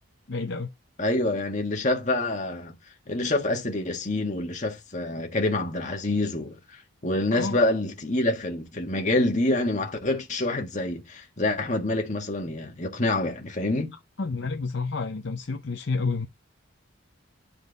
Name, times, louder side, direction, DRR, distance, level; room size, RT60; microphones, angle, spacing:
voice 1, 0.3-0.7 7.3-7.6 14.2-16.3, left 4 dB, 55° left, 0.6 m, -29 dB
voice 2, 1.0-2.7 3.1-6.6 7.0-13.9, left 2 dB, 35° left, 1.6 m, -26 dB
10.0 x 4.5 x 4.0 m
head